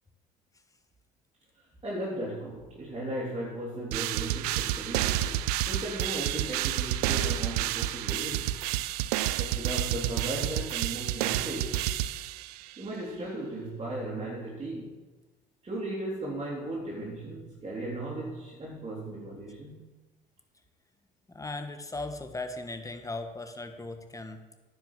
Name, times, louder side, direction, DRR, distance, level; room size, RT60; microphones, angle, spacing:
voice 1, 1.8-8.5 9.4-11.9 12.8-15.0 15.6-19.9, right 1 dB, 30° right, -5 dB, 3.5 m, -36 dB
sound 1, 3.9-12.7, right 13 dB, 80° right, 0.4 m, -30 dB
voice 2, 21.3-24.4, left 2 dB, 15° left, 6 dB, 1.5 m, -38 dB
10.0 x 6.4 x 7.4 m, 1.2 s
hypercardioid pair, 60°, 20 cm